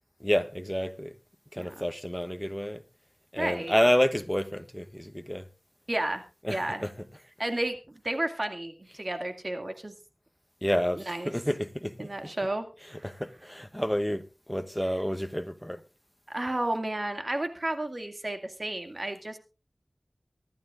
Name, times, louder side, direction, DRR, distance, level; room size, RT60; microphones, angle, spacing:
voice 1, 0.2-1.1 1.5-2.8 3.3-5.4 6.4-6.9 10.6-12.1 13.0-14.2 14.5-15.8, equal, 5° left, 1.0 m, -29 dB
voice 2, 1.6-1.9 3.4-3.8 5.9-6.2 6.5-6.8 7.4-9.9 10.9-11.3 12.0-13.1 16.3-19.4, right 1 dB, 45° right, 2.2 m, -32 dB
24.5 x 11.5 x 2.5 m
wide cardioid pair, 45°, 0 cm